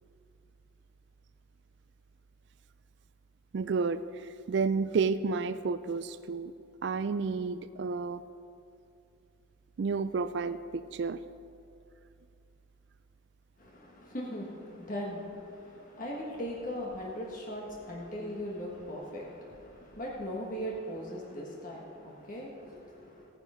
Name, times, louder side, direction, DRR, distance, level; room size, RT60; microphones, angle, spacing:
voice 1, 3.5-6.5 6.8-8.2 9.8-11.2, right 4 dB, 55° right, 13 dB, 0.3 m, -31 dB
voice 2, 13.6-23.3, equal, 40° left, -3 dB, 1.5 m, -39 dB
15.0 x 9.8 x 5.0 m, 2.6 s
head